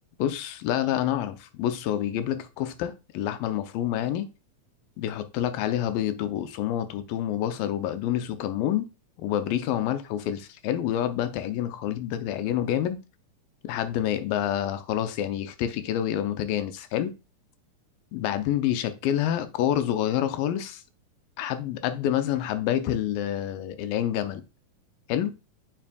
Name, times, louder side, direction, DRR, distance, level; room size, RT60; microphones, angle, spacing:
voice 1, 0.2-4.3 5.0-8.9 9.2-13.0 13.6-17.1 18.1-20.8 21.4-24.4 25.1-25.3, left 11 dB, 90° left, 2.4 m, -28 dB
7.0 x 5.9 x 2.3 m
omnidirectional pair, 4.0 m